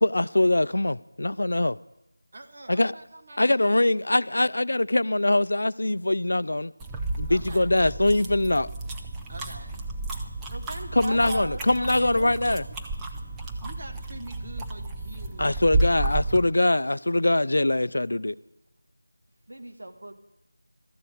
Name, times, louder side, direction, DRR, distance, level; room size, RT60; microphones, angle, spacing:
voice 1, 0.0-1.8 2.7-2.9 3.4-6.7 7.2-8.7 11.0-12.6 15.4-18.4, left 1 dB, 70° left, 0.4 m, -23 dB
voice 2, 2.3-3.7 7.3-7.9 9.3-9.9 13.6-15.8, right 2 dB, 35° right, 1.0 m, -45 dB
sound 1, 6.8-16.5, right 2 dB, 5° right, 0.5 m, -32 dB
voice 3, 10.5-12.8 19.5-20.2, right 1 dB, 70° right, 1.8 m, -39 dB
13.5 x 6.9 x 8.8 m
figure-of-eight pair, 175°, 0 cm